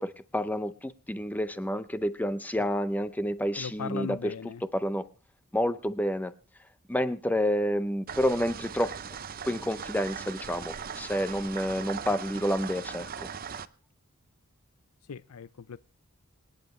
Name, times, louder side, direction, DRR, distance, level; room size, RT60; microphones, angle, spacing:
voice 1, 0.0-4.3 4.7-5.1 5.5-6.3 6.9-8.9 9.4-13.3, equal, 5° left, 0.6 m, -29 dB
voice 2, 3.6-4.6 15.1-15.8, left 6 dB, 90° left, 0.5 m, -38 dB
sound 1, 8.1-13.7, right 7 dB, 40° right, 0.7 m, -39 dB
26.5 x 9.0 x 3.2 m
head